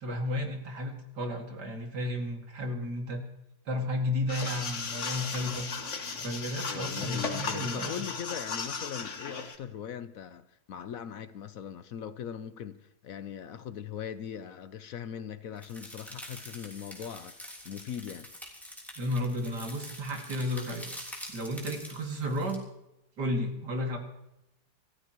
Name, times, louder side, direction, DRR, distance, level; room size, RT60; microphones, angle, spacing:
voice 1, 0.0-3.3 3.7-5.7 6.2-8.0 19.0-20.9 21.3-22.6 23.2-24.0, left 1 dB, 80° right, 2.8 m, -33 dB
sound 1, 4.3-9.6, left 5 dB, 45° left, 1.6 m, -36 dB
voice 2, 6.7-18.3, left 8 dB, 65° left, 1.0 m, -40 dB
sound 2, 15.6-22.6, equal, ahead, 3.3 m, -46 dB
27.5 x 14.0 x 3.0 m
omnidirectional pair, 1.8 m